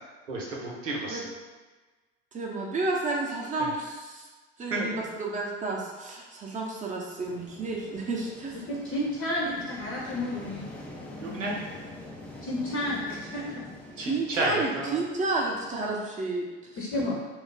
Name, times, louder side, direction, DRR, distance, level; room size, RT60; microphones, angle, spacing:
voice 1, 0.3-1.3 3.6-3.7 4.7-4.9 9.6-9.7 11.2-11.6 14.0-15.0, right 2 dB, 85° right, -2 dB, 0.8 m, -31 dB
voice 2, 2.3-4.2 4.6-8.6 14.0-16.5, right 2 dB, 20° right, -2 dB, 0.7 m, -31 dB
sound 1, 7.2-15.9, left 1 dB, 5° left, 0.3 m, -45 dB
voice 3, 8.7-10.6 12.4-13.6 16.8-17.2, left 1 dB, 35° left, -4 dB, 0.7 m, -31 dB
2.4 x 2.0 x 3.9 m, 1.3 s
hypercardioid pair, 80°, 37 cm